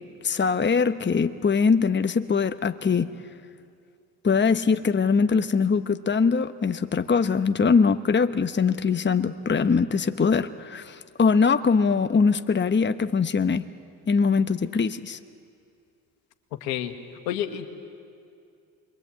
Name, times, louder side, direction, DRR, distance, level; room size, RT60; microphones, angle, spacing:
voice 1, 0.2-3.1 4.2-13.7 14.1-15.2, left 5 dB, 20° left, 10 dB, 1.1 m, -22 dB
voice 2, 16.6-16.9 17.3-17.7, left 11 dB, 80° left, 6 dB, 1.7 m, -29 dB
28.5 x 22.5 x 8.4 m, 2.5 s
hypercardioid pair, 50°, 50 cm